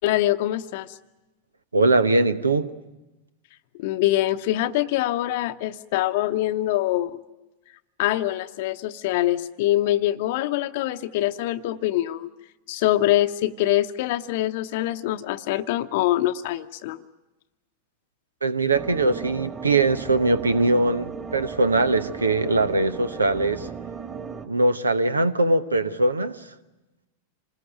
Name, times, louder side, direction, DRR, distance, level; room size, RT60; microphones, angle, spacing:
voice 1, 0.0-1.0 3.8-7.1 8.0-12.3 12.7-17.0, left 14 dB, 50° left, 0.9 m, -24 dB
voice 2, 1.7-2.7 18.4-23.7 24.5-26.5, right 2 dB, 75° right, 1.1 m, -21 dB
sound 1, 18.7-24.5, right 6 dB, 25° right, 2.6 m, -36 dB
27.0 x 20.5 x 9.0 m
figure-of-eight pair, 90°, 0 cm